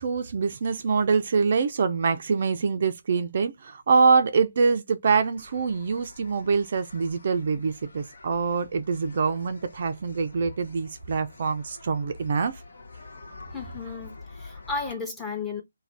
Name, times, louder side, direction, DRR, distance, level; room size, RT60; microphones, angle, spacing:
voice 1, 0.0-12.6, right 5 dB, 45° right, 0.4 m, -24 dB
sound 1, 5.4-14.9, left 3 dB, 60° left, 0.7 m, -47 dB
voice 2, 13.5-15.6, left 4 dB, 10° left, 0.8 m, -34 dB
2.4 x 2.2 x 3.2 m
figure-of-eight pair, 140°, 0 cm